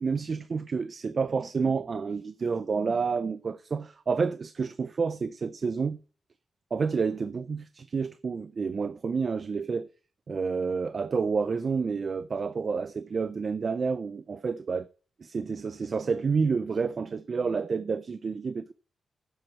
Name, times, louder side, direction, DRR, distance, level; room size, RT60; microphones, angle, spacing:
voice 1, 0.0-6.0 6.7-9.9 10.3-14.9 15.2-18.7, right 5 dB, 50° right, 0.5 m, -29 dB
7.9 x 6.1 x 7.4 m
wide cardioid pair, 100°, 0 cm